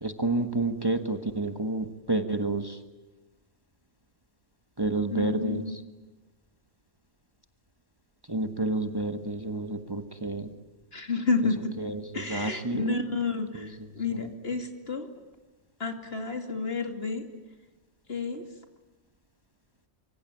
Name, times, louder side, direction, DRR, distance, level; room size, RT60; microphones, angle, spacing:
voice 1, 0.0-2.8 4.8-5.8 8.3-10.5 11.8-13.0 13.5-13.7 14.1-14.3, right 2 dB, 20° right, 7 dB, 1.5 m, -30 dB
voice 2, 5.1-5.8 10.9-11.7 12.1-15.1 15.8-17.2 18.1-18.4, left 4 dB, 55° left, 6 dB, 2.8 m, -30 dB
25.5 x 24.5 x 9.0 m, 1.1 s
omnidirectional pair, 1.2 m